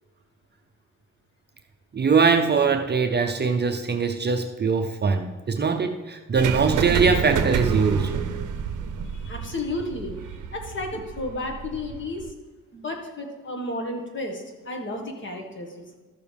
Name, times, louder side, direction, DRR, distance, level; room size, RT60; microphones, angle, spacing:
voice 1, 1.9-8.1, right 5 dB, 35° right, 5 dB, 0.6 m, -22 dB
sound 1, 6.4-12.3, right 7 dB, 70° right, 0.7 m, -28 dB
voice 2, 9.0-12.3 12.7-16.0, left 2 dB, 35° left, 2 dB, 1.7 m, -33 dB
12.5 x 6.9 x 3.5 m, 1.3 s
cardioid pair, 110°, 32 cm